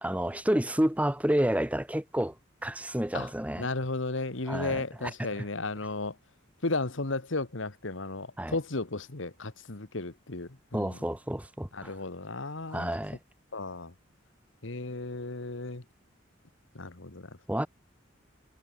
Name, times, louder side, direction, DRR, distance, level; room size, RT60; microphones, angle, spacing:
voice 1, 0.0-2.3 2.6-3.7 4.5-5.1 8.4-8.6 10.7-11.9 12.7-13.2 17.5-17.7, right 1 dB, 5° right, 0.9 m, -29 dB
voice 2, 3.6-6.1 6.6-11.0 11.7-12.9 13.5-13.9 14.6-15.8 16.7-17.3, left 2 dB, 70° left, 1.6 m, -34 dB
head